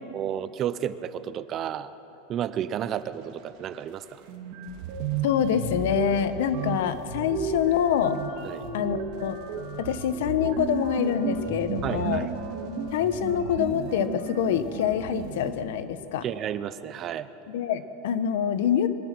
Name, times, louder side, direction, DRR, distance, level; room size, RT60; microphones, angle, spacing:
voice 1, 0.1-1.9 2.3-4.2 8.4-8.6 11.8-12.3 16.2-17.3, right 10 dB, 25° right, 14 dB, 0.6 m, -32 dB
sound 1, 3.9-4.0 4.3-15.5, right 5 dB, 45° right, 2.6 m, -33 dB
voice 2, 5.2-8.2 8.7-9.4 9.8-12.3 12.9-16.2 17.5-18.9, left 9 dB, 70° left, 11 dB, 1.2 m, -26 dB
23.0 x 18.5 x 6.1 m, 3.0 s
supercardioid pair, 165°, 0 cm